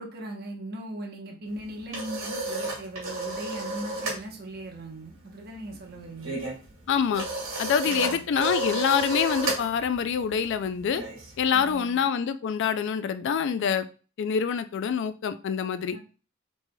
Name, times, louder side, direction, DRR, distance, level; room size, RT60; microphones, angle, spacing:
voice 1, 0.0-6.4 7.8-8.2 11.5-12.1 15.9-16.0, right 1 dB, 50° right, 1 dB, 0.9 m, -39 dB
sound 1, 1.5-4.2 4.5-4.8 5.1-11.7, right 2 dB, 85° right, 1.6 m, -33 dB
voice 2, 6.9-7.2 7.6-11.0 11.4-13.9 14.2-16.0, left 7 dB, 60° left, 12 dB, 0.3 m, -26 dB
5.2 x 3.1 x 2.2 m, 0.34 s
head